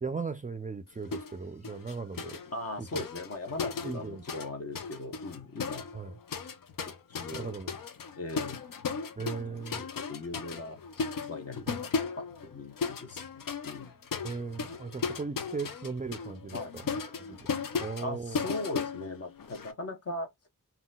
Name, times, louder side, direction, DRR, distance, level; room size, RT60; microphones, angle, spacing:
voice 1, 0.0-2.4 2.8-3.0 3.8-4.2 5.9-6.2 7.3-7.7 9.2-9.8 11.7-11.8 14.2-17.4 17.8-18.4, right 4 dB, 25° right, 0.4 m, -38 dB
sound 1, 1.1-1.4 1.6-4.5 4.7-19.7, left 5 dB, 75° left, 0.6 m, -36 dB
voice 2, 2.5-5.9 6.8-7.5 8.2-8.6 9.7-13.9 16.5-16.8 18.0-20.3, left 2 dB, 45° left, 0.8 m, -39 dB
3.8 x 2.3 x 2.2 m
wide cardioid pair, 75°, 34 cm